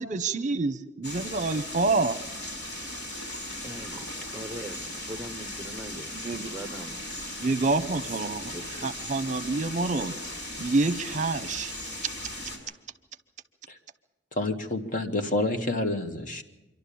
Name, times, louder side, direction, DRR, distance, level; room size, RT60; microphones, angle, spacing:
voice 1, 0.0-2.2 6.2-6.5 7.4-8.5 8.8-10.1 10.6-11.7, right 3 dB, 40° right, 12 dB, 0.9 m, -27 dB
sound 1, 1.0-12.6, left 1 dB, 65° left, 5.7 m, -37 dB
voice 2, 3.6-7.1 8.5-9.3, right 1 dB, 10° right, 8 dB, 1.0 m, -42 dB
voice 3, 14.3-16.4, left 2 dB, 45° left, 5 dB, 1.7 m, -28 dB
26.5 x 12.0 x 8.6 m, 1.1 s
head